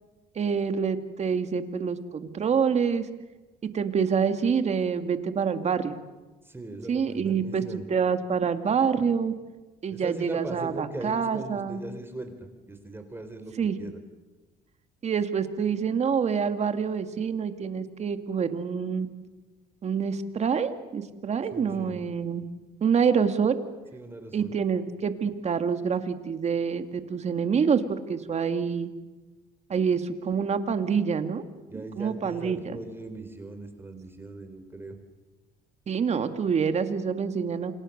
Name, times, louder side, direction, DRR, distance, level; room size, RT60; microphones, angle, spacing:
voice 1, 0.4-3.1 3.7-6.0 6.9-7.6 7.9-9.3 9.8-11.8 13.6-13.8 15.0-19.1 19.8-22.4 22.8-23.6 24.3-28.9 29.7-31.4 31.7-32.6 35.9-37.7, right 6 dB, 40° right, 8 dB, 2.3 m, -26 dB
voice 2, 6.4-7.9 9.9-14.0 21.5-22.0 23.9-24.6 31.7-35.0, right 2 dB, 15° right, 7 dB, 3.8 m, -39 dB
29.5 x 27.0 x 6.7 m, 1.2 s
cardioid pair, 110°, 17 cm